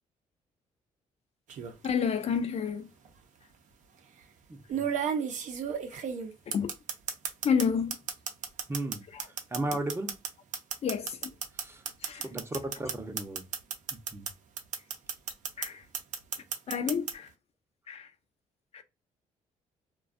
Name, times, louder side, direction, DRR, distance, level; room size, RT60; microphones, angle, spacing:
sound 1, 1.5-1.9 3.1-3.2 4.7-7.7 7.9-14.3 14.6-15.7 15.9-17.1, right 7 dB, 60° right, 0.5 m, -33 dB
voice 1, 1.8-2.9 5.9-6.0 6.5-6.7 7.4-8.0 9.1-9.3 10.8-11.4 12.0-12.3 15.6-15.9 16.7-17.3 17.9-18.1 18.7-18.8, left 6 dB, 45° left, 0.4 m, -30 dB
voice 2, 4.5-4.9 8.7-10.1 11.5-11.8 12.2-13.4 13.9-14.3, right 2 dB, 15° right, 0.6 m, -36 dB
2.4 x 2.2 x 2.4 m
cardioid pair, 90°, 14 cm